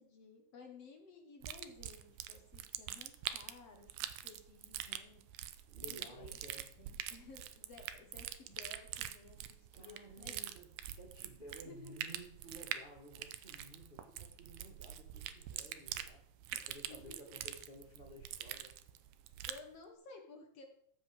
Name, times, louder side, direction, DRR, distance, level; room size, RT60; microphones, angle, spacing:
voice 1, 0.0-5.2 5.8-6.4 6.8-10.3 11.7-12.0 16.5-16.6 16.9-17.3 19.5-20.6, left 4 dB, 55° left, 3 dB, 2.2 m, -56 dB
sound 1, 1.4-19.7, right 12 dB, 80° right, 2.1 m, -45 dB
voice 2, 5.7-6.7 9.7-16.2 16.5-18.7, right 1 dB, 25° right, -2 dB, 1.1 m, -55 dB
14.5 x 5.4 x 5.1 m, 0.68 s
omnidirectional pair, 3.6 m